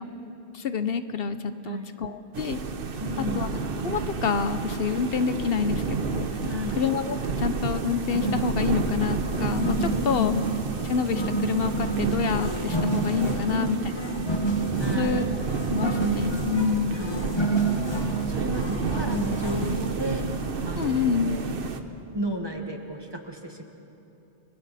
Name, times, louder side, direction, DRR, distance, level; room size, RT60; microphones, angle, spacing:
voice 1, 0.5-2.6 3.4-3.5 3.8-6.3 6.8-10.3 10.9-13.8 15.0-15.4 15.7-17.1 20.8-21.4, left 6 dB, 70° left, 10 dB, 1.0 m, -27 dB
sound 1, 2.3-21.8, right 4 dB, 65° right, 1.2 m, -30 dB
voice 2, 3.0-3.5 6.5-6.8 9.9-10.4 13.4-14.0 14.8-15.4 16.9-20.3 20.6-21.6 22.1-23.6, equal, 25° right, 3 dB, 1.6 m, -33 dB
sound 2, 8.1-20.0, right 3 dB, 25° left, 1.4 m, -30 dB
30.0 x 23.5 x 4.2 m, 3.0 s
omnidirectional pair, 1.0 m